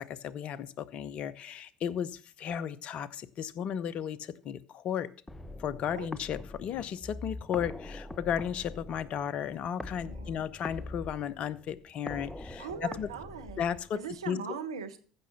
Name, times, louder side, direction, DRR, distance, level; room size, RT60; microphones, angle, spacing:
voice 1, 0.0-5.1 5.6-13.1 13.6-14.4, left 8 dB, 50° left, 17 dB, 0.8 m, -34 dB
sound 1, 5.3-14.2, left 2 dB, 15° left, 0.9 m, -43 dB
voice 2, 10.0-10.4 12.6-15.0, right 6 dB, 85° right, 7 dB, 1.3 m, -40 dB
15.0 x 6.2 x 5.7 m, 0.40 s
hypercardioid pair, 70°, 3 cm